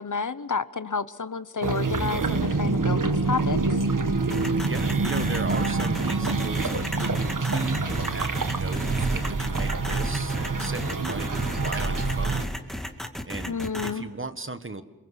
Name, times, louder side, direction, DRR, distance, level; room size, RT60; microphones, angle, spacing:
voice 1, 0.0-3.6 13.5-14.0, left 5 dB, 55° left, 14 dB, 1.0 m, -30 dB
Bio Life Signs Core, 1.6-12.4, right 3 dB, 60° right, 1.7 m, -26 dB
sound 1, 4.3-13.9, left 1 dB, ahead, 2.2 m, -34 dB
voice 2, 4.6-12.9 13.3-14.8, right 3 dB, 35° right, 11 dB, 1.5 m, -36 dB
29.0 x 22.0 x 8.3 m, 1.1 s
wide cardioid pair, 75°, 36 cm